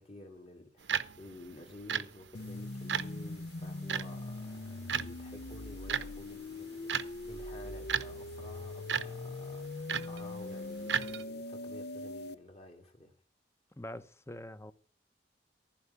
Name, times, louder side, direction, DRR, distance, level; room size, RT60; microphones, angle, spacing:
voice 1, 0.0-13.1, left 1 dB, 35° left, 2.9 m, -51 dB
sound 1, 0.8-11.2, right 7 dB, 85° right, 0.9 m, -38 dB
sound 2, 2.3-12.3, left 2 dB, 60° left, 0.8 m, -42 dB
voice 2, 13.8-14.7, left 1 dB, 15° left, 0.9 m, -44 dB
15.0 x 5.8 x 9.7 m
head